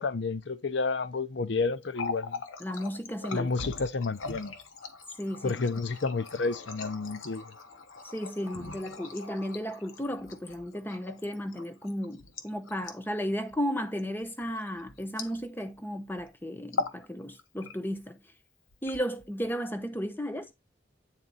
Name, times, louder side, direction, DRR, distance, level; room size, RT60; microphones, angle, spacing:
voice 1, 0.0-2.4 3.3-4.6 5.4-7.5, left 4 dB, 60° left, 0.6 m, -30 dB
Water tap faucet, 1.8-15.8 16.1-16.3 16.6-17.1 17.4-18.0 18.7-19.5, left 4 dB, 85° left, 1.1 m, -41 dB
voice 2, 2.6-3.7 5.2-5.5 8.0-18.2 18.8-20.5, equal, 10° left, 0.8 m, -34 dB
9.1 x 3.9 x 4.0 m
head